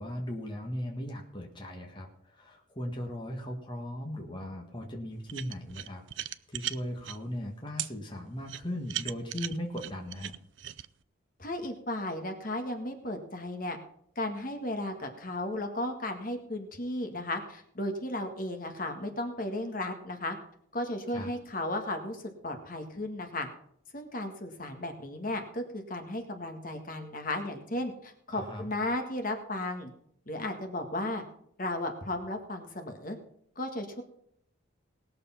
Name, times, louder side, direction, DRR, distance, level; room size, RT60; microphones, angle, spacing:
voice 1, 0.0-10.3 21.1-21.3 28.3-28.7, left 1 dB, 25° left, 1 dB, 1.6 m, -38 dB
sound 1, 5.3-7.2 7.8-7.9 8.5-10.9, right 13 dB, 65° right, 0.5 m, -37 dB
voice 2, 11.4-13.8 14.1-20.4 20.7-23.5 23.9-29.9 30.3-31.2 31.6-33.2 33.5-34.0, left 1 dB, 40° left, 5 dB, 1.7 m, -35 dB
19.0 x 6.7 x 5.7 m, 0.68 s
head